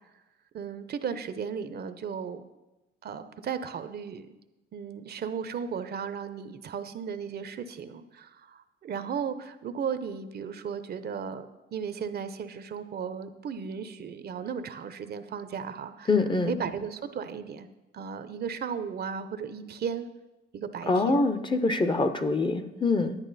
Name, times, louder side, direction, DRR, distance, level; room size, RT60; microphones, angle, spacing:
voice 1, 0.5-2.4 3.0-4.3 4.7-11.5 11.7-16.1 16.5-17.7 17.9-20.1 20.5-21.2, right 7 dB, 55° right, 11 dB, 0.7 m, -35 dB
voice 2, 16.1-16.5 20.9-23.2, left 3 dB, 25° left, 10 dB, 0.7 m, -25 dB
10.5 x 9.7 x 4.1 m, 1.0 s
cardioid pair, 90°, 20 cm